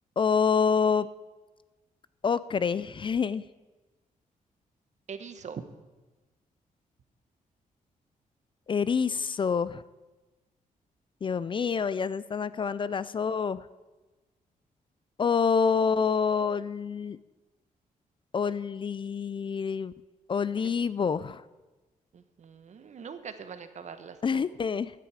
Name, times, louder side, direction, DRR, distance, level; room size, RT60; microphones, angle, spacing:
voice 1, 0.2-1.1 2.2-3.4 8.7-9.8 11.2-13.6 15.2-17.2 18.3-19.9 20.3-21.4 24.2-24.9, left 6 dB, 35° left, 17 dB, 0.4 m, -27 dB
voice 2, 5.1-5.6 20.6-20.7 22.1-24.4, right 6 dB, 55° right, 10 dB, 1.1 m, -42 dB
15.5 x 10.0 x 4.9 m, 1.2 s
cardioid pair, 105°, 14 cm